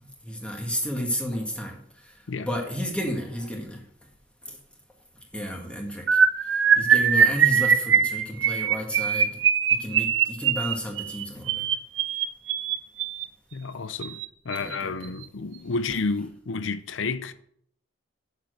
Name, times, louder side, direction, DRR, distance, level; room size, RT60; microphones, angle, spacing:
voice 1, 0.2-1.8 2.0-2.1 2.4-3.8 4.5-4.6 5.3-6.2 6.8-9.4 9.8-11.6 14.6-15.1, equal, 5° left, 1.7 m, -32 dB
sound 1, 6.1-13.3 14.0-14.3 14.5-14.8 15.0-15.2, right 7 dB, 75° right, 0.7 m, -22 dB
voice 2, 13.5-17.3, left 4 dB, 80° left, 0.6 m, -31 dB
7.6 x 6.8 x 7.8 m
head